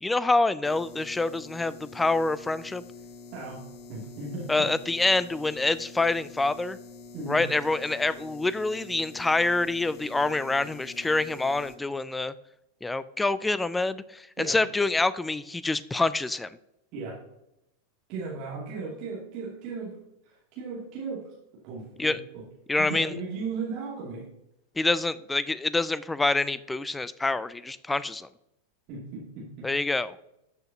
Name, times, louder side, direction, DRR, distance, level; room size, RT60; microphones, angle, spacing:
voice 1, 0.0-2.8 4.5-6.8 7.3-12.3 12.8-16.5 22.0-22.2 22.7-23.1 24.8-28.3 29.6-30.2, left 2 dB, 10° left, 17 dB, 0.3 m, -26 dB
sound 1, 0.6-11.8, left 4 dB, 40° left, 1.0 m, -47 dB
voice 2, 3.9-4.7 7.1-7.4 14.4-14.6 16.9-17.1 18.1-20.0 20.2-21.3 21.6-22.1 22.8-24.3 28.9-29.7, right 4 dB, 40° right, -6 dB, 2.4 m, -36 dB
13.0 x 6.4 x 2.8 m, 0.86 s
figure-of-eight pair, 90°, 0 cm